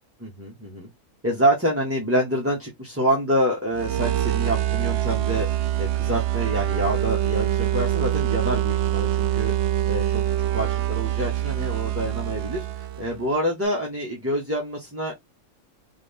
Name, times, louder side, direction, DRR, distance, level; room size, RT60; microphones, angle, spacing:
voice 1, 0.2-0.9 1.2-5.5 5.8-9.5 9.9-10.0 10.5-15.1, equal, 10° right, 1.1 m, -26 dB
sound 1, 3.7-13.2, right 13 dB, 65° right, 0.7 m, -24 dB
4.0 x 3.2 x 3.5 m
omnidirectional pair, 1.6 m